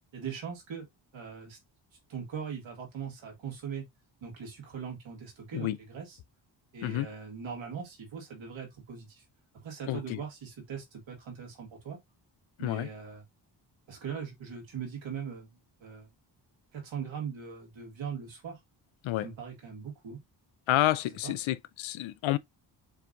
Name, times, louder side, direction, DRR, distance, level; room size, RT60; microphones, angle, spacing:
voice 1, 0.1-0.9 1.1-1.6 2.1-3.9 4.2-6.2 6.7-9.2 9.5-12.0 12.6-13.2 13.9-16.1 16.7-18.6 19.2-20.2 21.2-21.4, right 7 dB, 80° right, 2.1 m, -40 dB
voice 2, 9.9-10.2 12.6-12.9 19.0-19.3 20.7-22.4, left 15 dB, 90° left, 0.5 m, -29 dB
7.0 x 2.6 x 2.6 m
cardioid pair, 65°, 46 cm